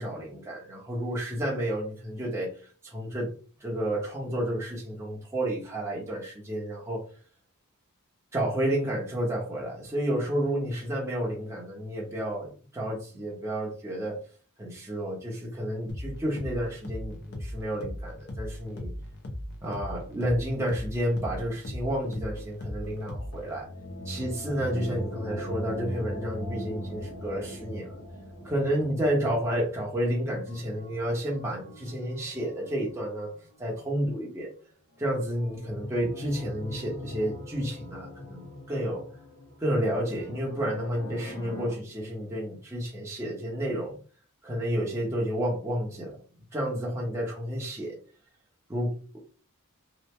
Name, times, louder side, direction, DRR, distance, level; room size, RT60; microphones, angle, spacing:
voice 1, 0.0-3.3 3.6-7.0 8.3-14.2 14.6-18.9 19.6-23.7 24.0-28.0 28.4-33.3 33.6-34.5 35.0-39.0 39.6-44.0 44.4-46.2 46.5-48.0 48.7-49.2, equal, 15° right, -4 dB, 0.8 m, -31 dB
sound 1, 15.9-23.6, left 1 dB, 50° left, 0.7 m, -38 dB
sound 2, 23.1-33.8 34.9-41.7, equal, 85° left, 1.2 m, -40 dB
2.9 x 2.6 x 3.2 m, 0.40 s
head